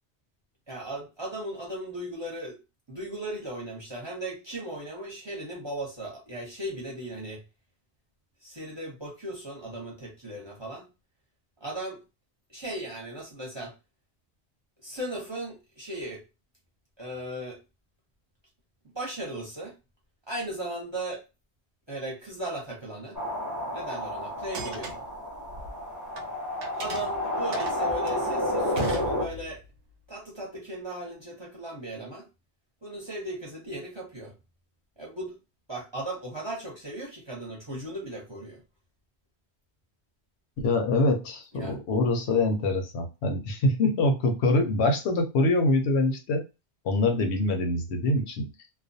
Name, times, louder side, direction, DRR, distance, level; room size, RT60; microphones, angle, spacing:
voice 1, 0.7-2.6 2.9-7.4 8.4-10.9 11.6-12.0 12.5-13.8 14.8-16.2 17.0-17.6 18.9-19.8 20.3-21.2 21.9-23.2 23.7-24.9 26.8-29.6 30.1-32.3 32.8-34.3 35.0-35.4 35.7-38.6 41.6-41.7, right 1 dB, 30° right, -2 dB, 0.7 m, -37 dB
sound 1, 23.1-29.3, left 1 dB, 20° left, 0.6 m, -30 dB
sound 2, 24.4-26.3 26.6-29.7, right 4 dB, 65° right, 0.7 m, -38 dB
voice 2, 40.6-46.4 46.8-48.5, left 2 dB, 75° left, 5 dB, 0.9 m, -24 dB
2.3 x 2.2 x 2.6 m, 0.27 s
omnidirectional pair, 1.1 m